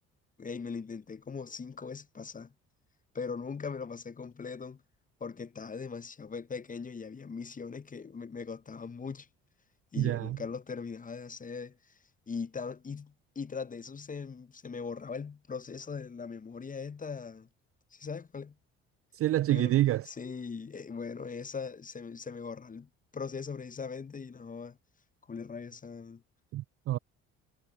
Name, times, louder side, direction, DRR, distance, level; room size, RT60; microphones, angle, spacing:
voice 1, 0.4-2.5 3.1-4.8 5.2-9.3 9.9-12.0 12.3-17.5 17.9-18.6 19.5-19.7 20.0-24.8 25.3-26.2, left 5 dB, 20° left, 0.8 m, -40 dB
voice 2, 10.0-10.4 19.1-20.0 26.5-27.0, right 14 dB, 40° right, 0.4 m, -27 dB
hypercardioid pair, 50°, 36 cm